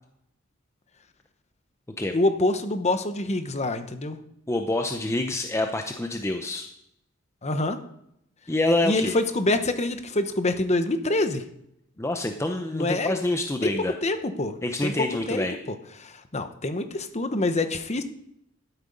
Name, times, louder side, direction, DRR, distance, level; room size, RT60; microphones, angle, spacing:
voice 1, 2.1-4.2 7.4-7.8 8.8-11.4 12.7-13.1 14.0-15.4 16.0-18.0, left 2 dB, 35° left, 9 dB, 1.0 m, -26 dB
voice 2, 4.5-6.7 8.5-9.1 12.0-14.0 14.6-15.6, left 2 dB, 15° left, 5 dB, 0.7 m, -26 dB
12.5 x 8.8 x 5.3 m, 0.77 s
head